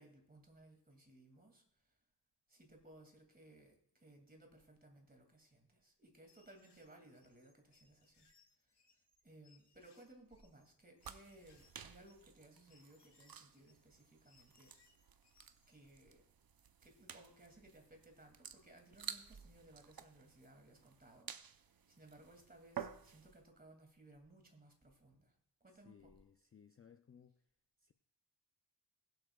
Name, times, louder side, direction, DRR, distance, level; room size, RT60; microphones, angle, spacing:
voice 1, 0.0-2.0 2.5-8.3 8.6-8.7 9.2-14.7 15.7-16.2 16.8-25.3 25.6-26.0, right 1 dB, 20° right, 2.3 m, -62 dB
sound 1, 6.3-15.9, left 4 dB, 70° left, 1.8 m, -73 dB
sound 2, 11.0-23.4, right 8 dB, 55° right, 0.7 m, -53 dB
voice 2, 25.7-27.5 27.8-27.9, left 7 dB, 35° left, 0.4 m, -63 dB
21.5 x 7.8 x 2.3 m
wide cardioid pair, 110°, 43 cm